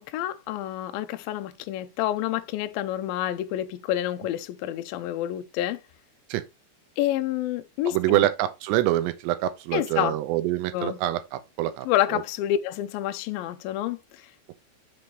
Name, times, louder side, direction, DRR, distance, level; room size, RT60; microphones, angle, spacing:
voice 1, 0.0-5.8 7.0-8.3 9.7-10.2 10.7-11.0 11.9-14.3, left 12 dB, 90° left, 2.0 m, -28 dB
voice 2, 7.8-12.2, right 14 dB, 85° right, 2.9 m, -26 dB
6.9 x 3.3 x 5.3 m
omnidirectional pair, 4.9 m